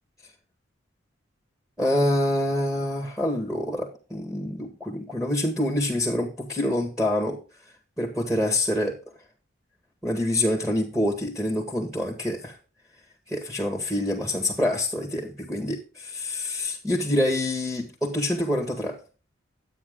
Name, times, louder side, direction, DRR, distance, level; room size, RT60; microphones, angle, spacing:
voice 1, 1.8-7.4 8.0-9.0 10.0-12.6 13.3-19.0, left 1 dB, 5° right, 1.8 m, -26 dB
12.0 x 8.9 x 3.7 m
head